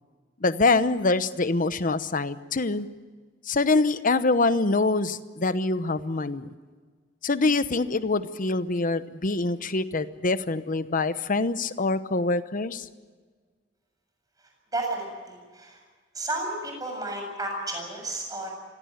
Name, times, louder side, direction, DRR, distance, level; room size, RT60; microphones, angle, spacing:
voice 1, 0.4-2.9 3.5-6.5 7.2-12.9, left 3 dB, 45° left, 13 dB, 0.9 m, -25 dB
voice 2, 14.7-15.8 16.1-18.5, right 2 dB, 20° right, 1 dB, 7.4 m, -32 dB
25.0 x 17.5 x 9.2 m, 1.5 s
head